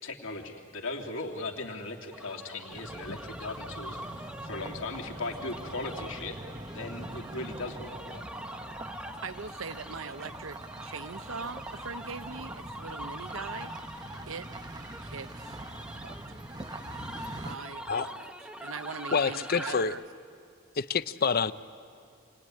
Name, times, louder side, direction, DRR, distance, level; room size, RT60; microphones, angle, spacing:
voice 1, 0.0-6.4 6.7-8.3, left 3 dB, 70° left, 2.8 m, -38 dB
sound 1, 2.1-19.8, equal, 5° right, 1.2 m, -44 dB
sound 2, 2.7-17.6, right 1 dB, 20° right, 0.9 m, -43 dB
voice 2, 9.2-14.5 15.0-15.6 15.9-16.2 17.4-18.3 18.6-20.0, right 4 dB, 75° right, 0.9 m, -41 dB
voice 3, 19.1-19.9 20.7-21.5, left 5 dB, 50° left, 0.7 m, -27 dB
27.5 x 20.0 x 9.9 m
head